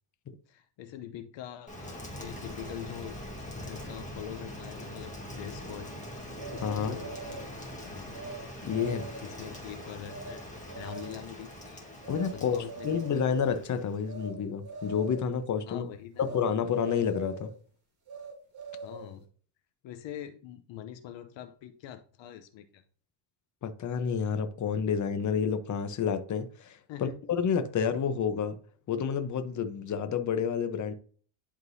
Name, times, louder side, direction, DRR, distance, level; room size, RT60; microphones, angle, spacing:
voice 1, 0.5-3.2 3.6-5.9 6.5-7.4 7.8-8.2 8.8-10.4 10.7-11.9 12.3-13.2 15.7-16.2 18.8-19.3 19.8-22.8 26.9-27.1, left 10 dB, 65° left, 0.8 m, -44 dB
Rain, 1.7-14.1, left 1 dB, 15° left, 1.5 m, -43 dB
sound 1, 6.4-7.5 8.1-8.4 8.7-9.3 10.1-10.3 10.7-11.2 12.0-12.3 12.6-13.3 14.0-14.3 14.6-15.3 16.2-16.4 16.7-17.5 18.1-19.1, right 4 dB, 50° right, 2.6 m, -42 dB
voice 2, 6.6-7.0 8.6-9.0 12.1-15.9 16.2-17.5 23.6-28.6 28.9-30.9, left 7 dB, 35° left, 0.9 m, -29 dB
11.0 x 3.8 x 2.7 m
cardioid pair, 105°, 49 cm